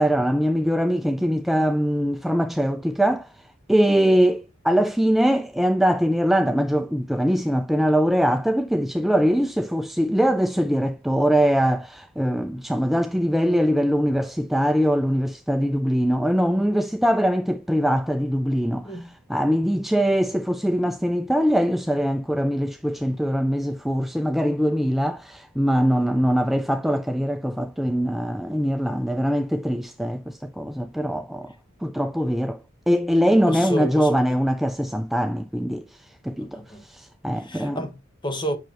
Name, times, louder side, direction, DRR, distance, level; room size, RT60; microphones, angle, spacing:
voice 1, 0.0-3.3 3.7-19.0 19.3-31.5 31.8-32.6 32.9-37.8, equal, ahead, 0.3 m, -22 dB
voice 2, 33.5-34.4 36.4-36.8 37.3-38.6, equal, 25° left, 1.3 m, -31 dB
9.2 x 6.1 x 2.9 m
head